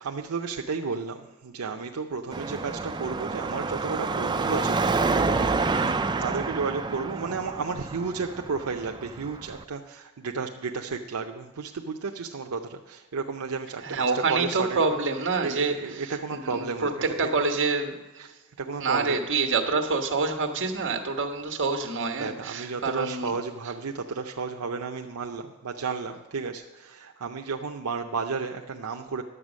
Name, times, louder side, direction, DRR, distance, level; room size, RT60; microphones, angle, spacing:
voice 1, 0.0-14.8 15.4-17.3 18.2-19.2 22.2-29.2, right 4 dB, 80° right, 3 dB, 0.6 m, -33 dB
Car passing by / Traffic noise roadway noise / Engine, 2.3-9.6, right 3 dB, 20° right, 0.4 m, -28 dB
voice 2, 13.8-18.0 18.8-23.3, right 4 dB, 55° right, 5 dB, 1.3 m, -27 dB
11.0 x 8.1 x 6.3 m, 1.1 s
head